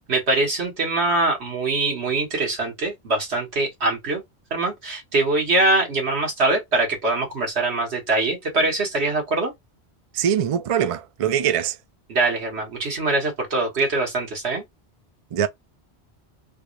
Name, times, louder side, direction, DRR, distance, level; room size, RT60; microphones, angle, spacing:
voice 1, 0.1-4.2 4.5-9.5 12.1-14.6, right 2 dB, 80° right, 1.7 m, -23 dB
voice 2, 10.1-11.8 15.3-15.5, right 9 dB, 60° right, 0.3 m, -22 dB
3.4 x 2.5 x 3.2 m
omnidirectional pair, 1.1 m